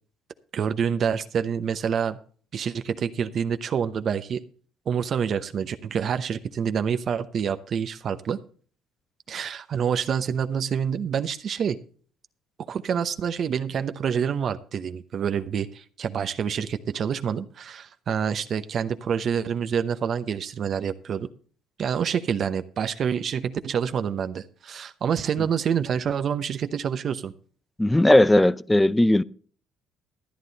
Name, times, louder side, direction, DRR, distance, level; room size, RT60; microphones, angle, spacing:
voice 1, 0.5-2.2 2.5-4.4 4.9-8.4 9.3-11.8 12.7-21.3 21.8-27.3, right 7 dB, 45° right, 0.8 m, -27 dB
voice 2, 27.8-29.2, left 1 dB, 10° left, 0.6 m, -17 dB
13.5 x 9.7 x 4.1 m
cardioid pair, 125°, 0 cm